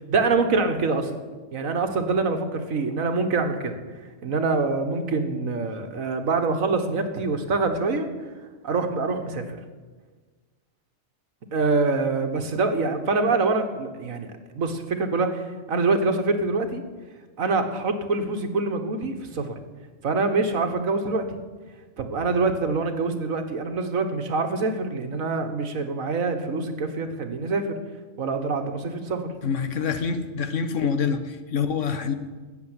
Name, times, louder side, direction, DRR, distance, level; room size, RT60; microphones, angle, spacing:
voice 1, 0.1-1.1 1.5-3.8 4.2-8.1 8.6-9.6 11.5-14.3 14.5-16.8 17.4-19.6 20.0-21.4 22.0-27.8 28.2-29.3, right 3 dB, 85° right, 7 dB, 1.8 m, -25 dB
voice 2, 29.4-32.2, left 6 dB, 70° left, 9 dB, 1.4 m, -26 dB
14.0 x 8.2 x 9.7 m, 1.4 s
omnidirectional pair, 1.4 m